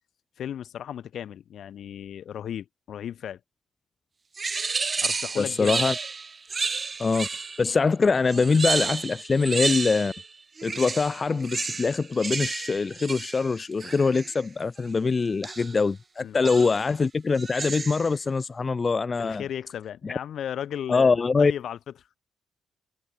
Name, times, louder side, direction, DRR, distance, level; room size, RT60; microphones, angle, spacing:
voice 1, 0.4-3.4 5.0-5.8 6.5-6.6 16.2-16.7 19.1-21.8, left 9 dB, 65° left, 1.8 m, -35 dB
sound 1, 4.4-7.7 8.3-10.3 10.6-14.4 15.4-15.8 16.4-16.9 17.3-18.1, right 4 dB, 30° right, 0.4 m, -31 dB
voice 2, 5.4-5.9 7.0-10.1 10.6-19.4 20.0-20.1 20.9-21.5, left 4 dB, 30° left, 0.5 m, -23 dB
cardioid pair, 90°, 0 cm